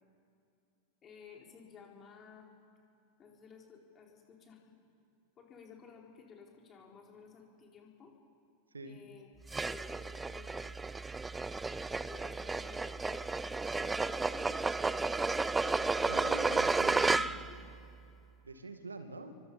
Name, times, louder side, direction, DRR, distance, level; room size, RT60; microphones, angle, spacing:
voice 1, 1.0-2.5 3.2-4.7 5.4-8.1 8.8-9.3 9.7-10.8 12.0-15.3 15.7-16.0 17.1-17.7, left 6 dB, 25° left, 0 dB, 4.1 m, -55 dB
sound 1, 9.5-17.6, right 3 dB, 10° right, 0.5 m, -32 dB
voice 2, 16.1-17.4 18.4-19.3, right 2 dB, 75° right, 9 dB, 2.0 m, -45 dB
28.5 x 24.0 x 5.6 m, 2.6 s
figure-of-eight pair, 90°, 0 cm